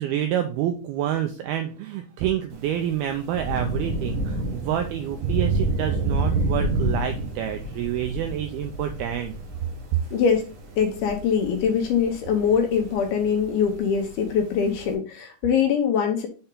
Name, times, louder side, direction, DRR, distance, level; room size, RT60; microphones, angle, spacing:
voice 1, 0.0-9.3, right 11 dB, 90° right, 5 dB, 2.2 m, -28 dB
Thunder / Rain, 2.5-14.9, right 2 dB, 65° right, 2.1 m, -29 dB
voice 2, 10.1-10.4 10.8-16.3, left 7 dB, 75° left, 4 dB, 2.5 m, -23 dB
6.7 x 4.3 x 3.7 m, 0.36 s
omnidirectional pair, 5.0 m